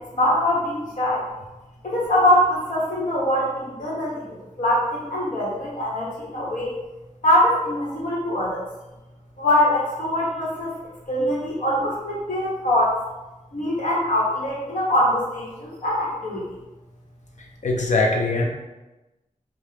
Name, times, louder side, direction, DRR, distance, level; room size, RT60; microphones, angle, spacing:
voice 1, 0.1-1.2 1.8-6.7 7.2-8.6 9.4-10.7 11.1-13.0 13.5-16.4, left 1 dB, 85° left, -5 dB, 1.3 m, -23 dB
voice 2, 17.6-18.5, left 2 dB, 65° left, 0 dB, 0.6 m, -21 dB
4.8 x 2.4 x 2.9 m, 1.0 s
wide cardioid pair, 110°, 13 cm